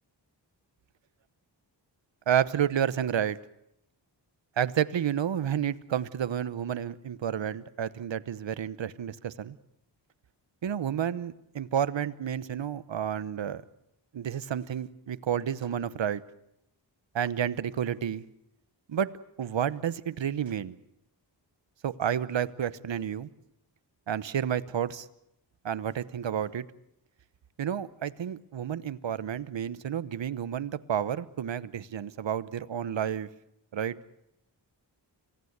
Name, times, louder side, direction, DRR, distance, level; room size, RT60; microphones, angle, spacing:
voice 1, 2.3-3.4 4.6-9.6 10.6-13.6 14.1-16.2 17.1-18.2 18.9-19.1 19.4-20.8 21.8-23.3 24.1-25.1 25.6-26.7 27.6-33.3 33.7-34.0, right 9 dB, 75° right, 16 dB, 1.0 m, -30 dB
26.0 x 18.0 x 8.1 m, 0.80 s
cardioid pair, 60°, 45 cm